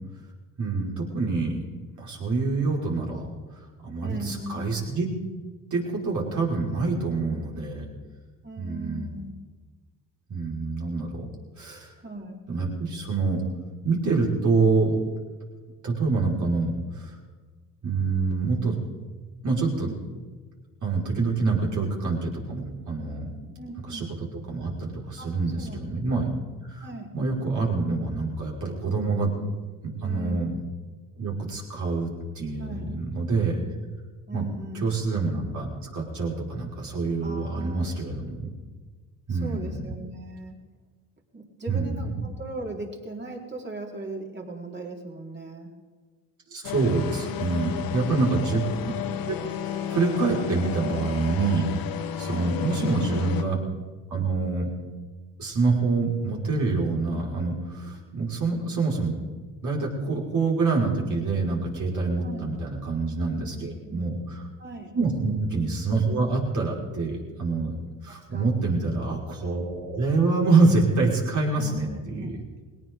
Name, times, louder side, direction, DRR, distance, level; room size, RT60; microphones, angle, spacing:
voice 1, 0.6-1.6 2.0-3.3 3.8-5.1 5.7-7.9 8.6-9.1 10.3-11.3 11.6-11.9 12.5-13.4 13.8-15.0 15.8-17.1 17.8-18.8 19.4-19.9 20.8-23.5 23.9-24.0 24.5-26.2 26.6-26.8 27.1-29.3 30.0-30.5 31.2-33.6 34.3-34.4 34.8-35.7 35.9-38.5 39.3-39.8 41.7-42.2 46.5-48.6 49.3-51.7 52.2-53.6 54.1-54.7 55.4-59.2 59.6-64.4 64.9-67.8 68.0-72.3, right 3 dB, 50° right, -2 dB, 5.3 m, -26 dB
voice 2, 4.0-4.9 8.4-9.3 12.0-12.4 23.6-24.2 25.2-26.2 26.8-27.1 30.0-30.5 32.6-32.9 34.3-34.9 37.2-38.1 39.3-40.6 41.3-45.7 47.7-48.2 52.2-52.6 62.2-62.5 63.2-64.1 64.6-64.9 68.3-68.8 71.5-72.3, right 1 dB, 30° right, -1 dB, 4.2 m, -38 dB
sound 1, 46.6-53.4, left 9 dB, 65° left, 1.2 m, -32 dB
20.0 x 18.0 x 3.8 m, 1.4 s
supercardioid pair, 65°, 38 cm